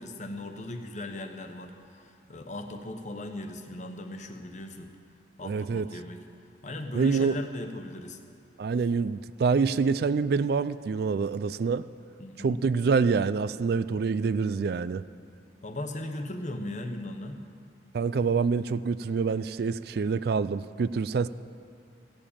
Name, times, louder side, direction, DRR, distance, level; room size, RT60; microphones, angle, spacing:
voice 1, 0.0-4.9 5.4-6.2 6.6-8.2 12.2-12.6 15.6-17.4, left 1 dB, 40° left, 6 dB, 1.0 m, -38 dB
voice 2, 5.4-5.9 6.9-7.4 8.6-11.9 12.4-15.0 17.9-21.3, right 5 dB, 60° right, 15 dB, 0.3 m, -26 dB
15.5 x 7.2 x 8.7 m, 2.4 s
head